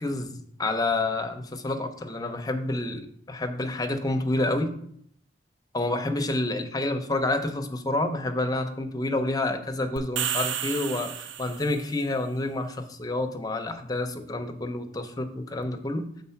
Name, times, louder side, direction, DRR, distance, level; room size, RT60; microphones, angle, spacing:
voice 1, 0.0-4.7 5.7-16.1, left 2 dB, 20° left, 5 dB, 0.6 m, -29 dB
sound 1, 10.0-11.9, right 9 dB, 75° right, 0.4 m, -31 dB
6.7 x 3.9 x 5.7 m, 0.67 s
head